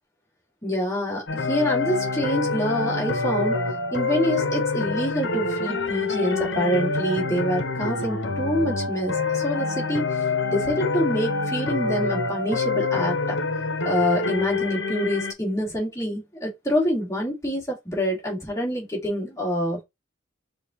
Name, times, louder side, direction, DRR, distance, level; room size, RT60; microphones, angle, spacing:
voice 1, 0.6-3.6 3.9-10.0 10.5-13.4 13.8-19.8, equal, 15° left, 2.3 m, -26 dB
sound 1, 1.3-15.3, left 3 dB, 70° left, 1.0 m, -26 dB
6.8 x 2.4 x 2.9 m
head